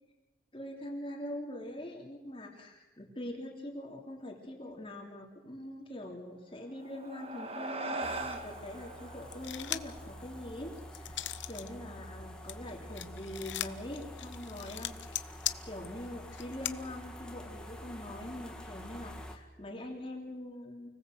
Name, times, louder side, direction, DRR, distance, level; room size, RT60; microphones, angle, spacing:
voice 1, 0.5-11.2 11.5-14.9 15.2-15.3 15.6-20.9, left 1 dB, 25° left, 0 dB, 3.1 m, -43 dB
sound 1, 6.6-11.4, right 2 dB, 30° right, 1.7 m, -42 dB
sound 2, 8.0-19.4, equal, 5° left, 2.2 m, -47 dB
sound 3, 9.3-10.0 10.4-11.7 12.0-16.7, left 13 dB, 75° left, 1.0 m, -39 dB
29.5 x 19.5 x 7.8 m, 1.1 s
head